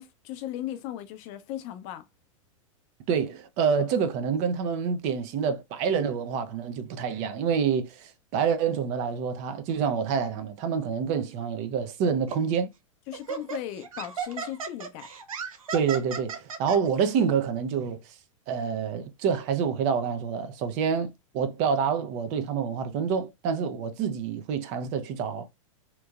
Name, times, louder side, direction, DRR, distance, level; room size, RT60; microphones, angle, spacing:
voice 1, 0.0-2.1 13.1-15.1, left 12 dB, 45° left, 0.5 m, -37 dB
voice 2, 3.1-12.7 15.7-18.1 18.5-25.5, right 6 dB, 45° right, 0.6 m, -27 dB
Laughter, 12.3-12.5 13.1-16.8, right 5 dB, 90° right, 0.6 m, -35 dB
2.9 x 2.6 x 2.3 m
hypercardioid pair, 105°, 17 cm